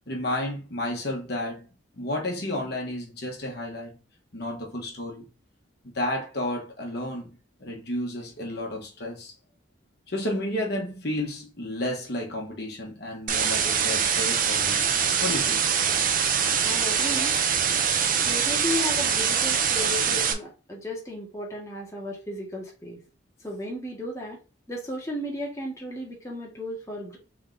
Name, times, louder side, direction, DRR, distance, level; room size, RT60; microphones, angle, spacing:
voice 1, 0.0-1.7 2.0-4.0 4.3-5.3 5.8-9.3 10.1-14.8 15.2-15.6 17.0-17.3, left 1 dB, 55° left, 1.2 m, -32 dB
sound 1, 13.3-20.3, right 7 dB, 45° right, 0.6 m, -24 dB
voice 2, 16.6-17.4 18.2-23.0 23.4-24.4 24.7-27.2, left 1 dB, 15° left, 1.2 m, -34 dB
3.8 x 3.5 x 3.8 m
head